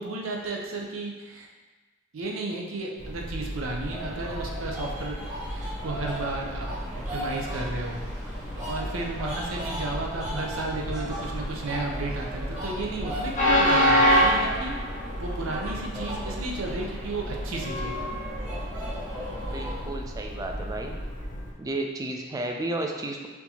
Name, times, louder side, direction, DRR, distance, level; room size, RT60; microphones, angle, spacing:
voice 1, 0.0-1.5 2.1-5.2 5.5-6.7 6.9-8.4 8.6-14.8 15.2-18.1, right 2 dB, 85° right, 0 dB, 0.6 m, -33 dB
Train, 3.0-21.5, equal, 40° left, 0.7 m, -29 dB
sound 1, 3.8-19.9, equal, 35° right, 1.2 m, -38 dB
voice 2, 19.5-20.9 21.6-23.3, right 2 dB, 20° right, 2 dB, 0.3 m, -32 dB
4.3 x 2.7 x 2.8 m, 1.3 s
head